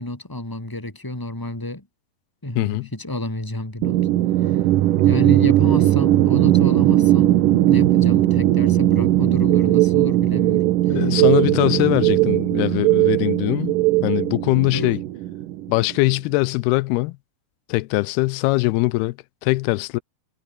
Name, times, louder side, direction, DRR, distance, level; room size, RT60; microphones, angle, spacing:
voice 1, 0.0-1.9 2.4-4.0 5.0-11.0 14.7-15.0, left 1 dB, 5° left, 3.4 m, -30 dB
voice 2, 2.6-2.9 10.9-15.0 15.7-17.2 17.7-19.2 19.4-20.0, left 21 dB, 85° left, 2.6 m, -21 dB
sound 1, 3.8-16.0, right 14 dB, 65° right, 2.4 m, -19 dB
sound 2, 9.5-14.3, right 23 dB, 85° right, 2.0 m, -20 dB
omnidirectional pair, 4.5 m